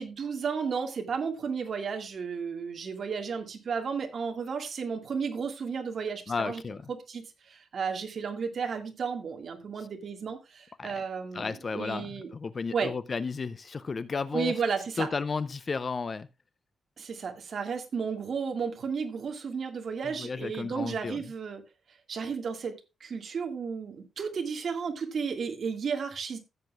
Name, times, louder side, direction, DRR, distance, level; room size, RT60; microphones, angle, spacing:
voice 1, 0.0-6.6 7.1-12.3 12.7-12.9 14.3-15.1 17.0-21.6 22.1-26.4, right 6 dB, 45° right, 2.0 m, -33 dB
voice 2, 6.3-6.8 9.8-9.9 10.8-11.0 11.3-14.5 15.0-16.3 20.0-21.3, left 4 dB, 30° left, 0.4 m, -33 dB
14.5 x 8.0 x 2.4 m
wide cardioid pair, 170°, 0 cm